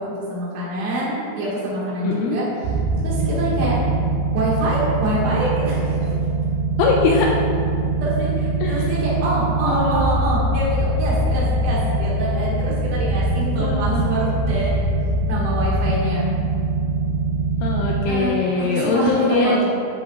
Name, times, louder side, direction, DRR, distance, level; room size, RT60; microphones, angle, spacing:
voice 1, 0.0-2.4 3.0-3.8 4.3-6.1 8.0-14.9 15.2-16.3 18.1-19.6, right 1 dB, 60° right, -8 dB, 1.9 m, -25 dB
voice 2, 2.0-2.4 6.8-7.3 8.6-8.9 9.6-10.1 13.6-14.1 17.6-19.6, left 3 dB, 85° left, -2 dB, 2.9 m, -21 dB
sound 1, 2.6-18.0, right 2 dB, 85° right, 3.3 m, -22 dB
10.5 x 6.8 x 2.4 m, 2.6 s
omnidirectional pair, 5.9 m